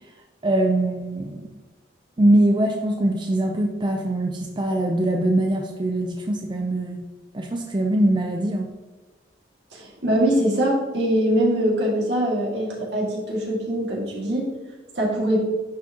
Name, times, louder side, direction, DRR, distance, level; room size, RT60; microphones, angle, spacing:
voice 1, 0.4-1.5 2.2-7.0 7.3-8.7, right 1 dB, 25° right, 2 dB, 0.5 m, -22 dB
voice 2, 9.7-14.5 14.9-15.4, equal, 75° right, -3 dB, 2.1 m, -22 dB
10.0 x 4.8 x 2.9 m, 1.2 s
head